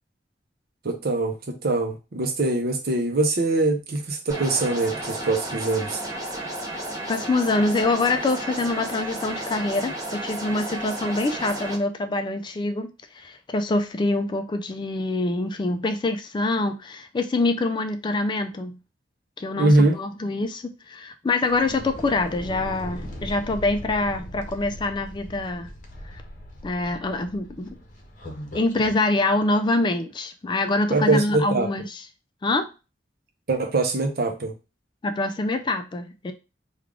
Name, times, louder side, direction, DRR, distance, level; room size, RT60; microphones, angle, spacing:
voice 1, 0.8-6.0 19.5-20.0 30.9-31.7 33.5-34.5, right 2 dB, 55° right, 0.7 m, -23 dB
sound 1, 4.3-11.8, right 1 dB, 20° right, 1.0 m, -33 dB
voice 2, 7.1-18.8 19.4-25.7 26.0-26.2 26.6-27.8 28.5-32.0 32.4-32.7 35.0-36.3, left 2 dB, 25° left, 0.3 m, -25 dB
sound 2, 21.4-29.0, equal, 45° left, 0.7 m, -39 dB
3.3 x 2.3 x 3.6 m
head